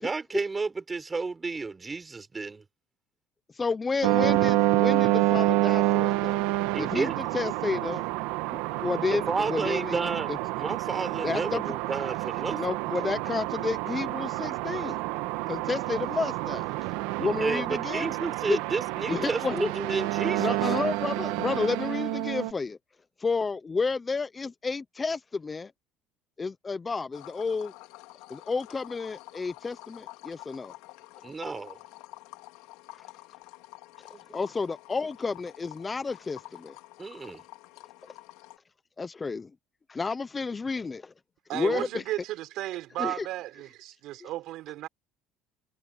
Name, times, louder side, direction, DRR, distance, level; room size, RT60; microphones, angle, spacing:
voice 1, 0.0-2.6 6.7-7.2 9.1-10.3 10.6-12.6 17.4-20.6 31.2-31.8 34.1-34.2 37.0-37.4, right 4 dB, 15° right, 4.2 m, -31 dB
voice 2, 3.5-6.4 6.8-8.0 8.5-10.0 10.3-10.4 11.2-11.6 12.6-15.0 15.5-16.7 17.2-18.1 18.5-18.6 19.1-19.7 20.4-22.8 23.2-25.7 26.4-27.7 28.3-30.7 34.3-36.8 39.0-39.5 39.9-41.1 41.5-42.0 43.0-43.3 44.2-44.3, left 4 dB, 15° left, 0.6 m, -31 dB
sound 1, 4.0-22.5, right 19 dB, 85° right, 1.5 m, -28 dB
sound 2, 27.1-38.6, left 20 dB, 85° left, 2.9 m, -49 dB
voice 3, 41.5-44.9, right 15 dB, 60° right, 5.0 m, -34 dB
cardioid pair, 150°, 0 cm